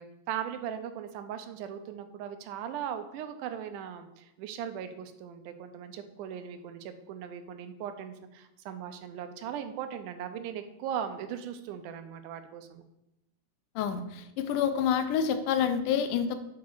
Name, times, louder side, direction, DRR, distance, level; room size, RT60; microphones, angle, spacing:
voice 1, 0.0-12.8, right 9 dB, 85° right, 8 dB, 2.2 m, -38 dB
voice 2, 13.8-16.4, left 8 dB, 85° left, 9 dB, 2.2 m, -28 dB
9.6 x 4.1 x 4.6 m, 0.88 s
omnidirectional pair, 3.6 m